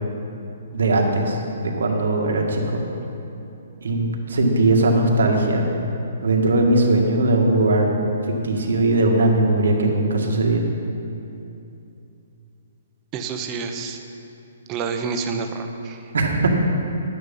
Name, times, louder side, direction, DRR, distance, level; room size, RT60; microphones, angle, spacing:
voice 1, 0.7-2.8 3.8-5.7 6.2-7.9 8.4-10.7 16.1-16.5, right 2 dB, 90° right, 1 dB, 1.9 m, -19 dB
voice 2, 13.1-14.0 14.7-16.0, right 5 dB, 20° right, 5 dB, 0.7 m, -28 dB
11.5 x 9.7 x 5.5 m, 2.8 s
hypercardioid pair, 170°, 0 cm